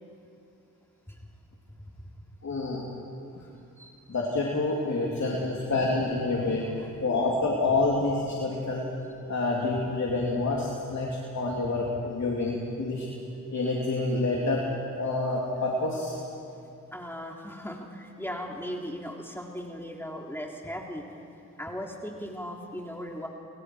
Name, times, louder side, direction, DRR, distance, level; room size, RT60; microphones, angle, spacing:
voice 1, 2.4-2.8 3.4-3.5 4.1-6.6 7.0-8.9 9.3-13.1 13.5-14.6 14.9-16.1, left 2 dB, 55° left, -3 dB, 3.3 m, -27 dB
voice 2, 6.1-7.3 16.9-21.0 21.6-23.3, equal, 5° left, 0 dB, 2.9 m, -38 dB
28.5 x 24.0 x 4.9 m, 2.8 s
cardioid pair, 50°, 33 cm